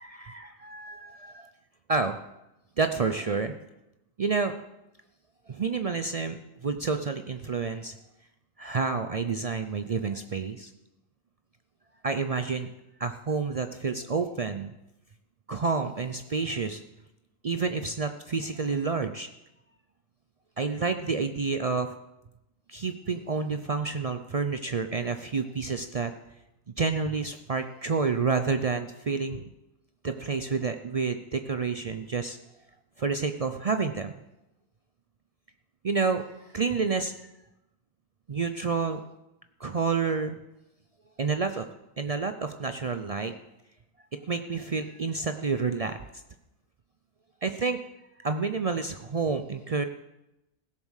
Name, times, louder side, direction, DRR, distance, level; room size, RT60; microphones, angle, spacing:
voice 1, 0.0-1.5 1.9-2.2 2.8-3.5 4.2-4.6 5.5-8.0 8.6-10.7 12.0-12.7 13.0-14.7 15.5-16.8 17.4-19.3 20.6-22.0 22.7-26.1 26.8-29.5 30.0-32.4 33.0-34.1 35.8-37.3 38.3-39.0 39.6-40.4 41.2-41.7 42.0-43.4 44.3-46.0 47.4-47.8 48.2-49.8, right 4 dB, 75° right, 8 dB, 0.3 m, -29 dB
16.5 x 7.1 x 6.4 m, 0.93 s
omnidirectional pair, 1.4 m